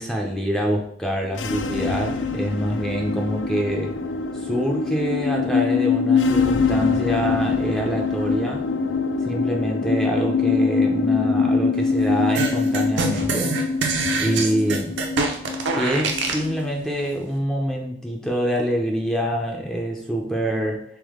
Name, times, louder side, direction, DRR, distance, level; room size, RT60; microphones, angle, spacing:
voice 1, 0.0-4.0 4.4-8.6 9.2-13.5 14.2-15.0 15.7-20.8, equal, 5° left, 0 dB, 0.5 m, -25 dB
sound 1, 1.2-16.8, left 4 dB, 75° left, 0.3 m, -24 dB
sound 2, 12.3-16.5, right 4 dB, 75° right, 0.7 m, -25 dB
3.5 x 3.4 x 3.5 m, 0.68 s
head